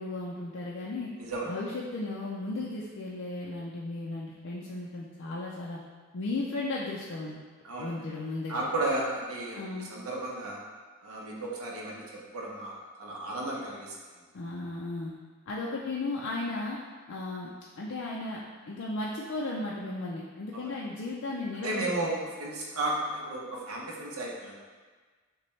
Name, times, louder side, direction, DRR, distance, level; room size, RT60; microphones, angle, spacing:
voice 1, 0.0-1.1 1.5-5.8 6.1-7.4 7.8-8.6 9.5-9.9 14.3-15.2 15.5-16.8 17.1-17.5 17.8-18.4 18.7-22.1, left 2 dB, 55° left, -4 dB, 0.4 m, -35 dB
voice 2, 1.2-1.5 7.6-7.9 8.5-9.6 9.9-10.6 11.0-12.0 12.3-14.0 20.5-20.7 21.6-24.6, right 2 dB, 65° right, -3 dB, 0.8 m, -33 dB
6.6 x 2.2 x 3.2 m, 1.4 s
head